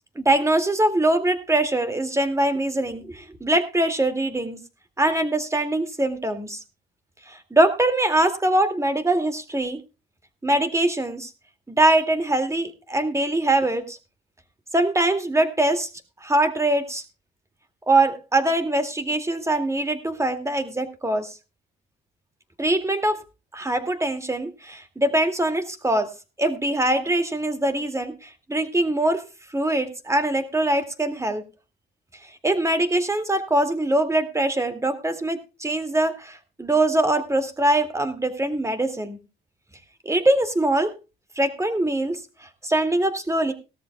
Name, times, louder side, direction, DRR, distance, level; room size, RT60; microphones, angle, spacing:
voice 1, 0.2-4.6 5.0-6.6 7.3-9.8 10.4-11.3 11.7-14.0 14.7-15.9 16.2-17.0 17.9-21.3 22.6-23.2 23.5-26.1 26.4-29.2 29.5-31.4 32.4-39.2 40.1-40.9 41.4-43.5, right 1 dB, 15° right, 8 dB, 2.3 m, -23 dB
18.5 x 13.5 x 2.3 m, 0.28 s
cardioid pair, 90°, 20 cm